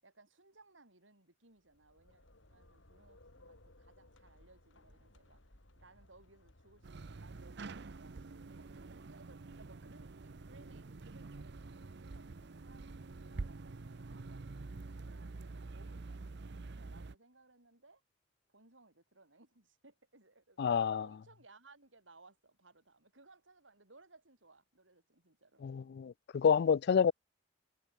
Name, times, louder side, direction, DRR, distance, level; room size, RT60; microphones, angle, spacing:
voice 1, 0.0-5.4 5.8-12.3 12.6-14.4 14.9-18.0 18.5-25.9, right 2 dB, 85° right, 7.4 m, -63 dB
sound 1, 1.6-7.6, left 1 dB, 80° left, 3.5 m, -63 dB
sound 2, 6.8-17.1, right 3 dB, 60° right, 0.7 m, -47 dB
voice 2, 20.6-21.1 25.6-27.1, left 7 dB, 60° left, 0.3 m, -28 dB
head